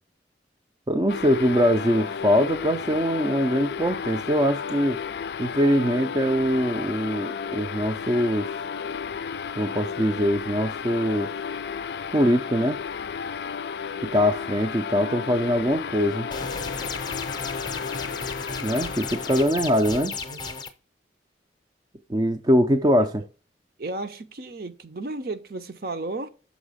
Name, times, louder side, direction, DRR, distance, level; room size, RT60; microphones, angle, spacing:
voice 1, 0.9-5.0 5.4-8.5 9.6-11.3 12.1-12.8 14.1-16.3 18.6-20.1 22.1-23.2, equal, 20° right, 0.4 m, -22 dB
sound 1, 1.1-19.5, left 6 dB, 65° left, 0.4 m, -33 dB
sound 2, 16.3-20.7, left 4 dB, 25° left, 0.6 m, -34 dB
voice 2, 19.9-20.4 23.8-26.3, right 2 dB, 55° right, 0.7 m, -34 dB
6.2 x 4.8 x 4.9 m
head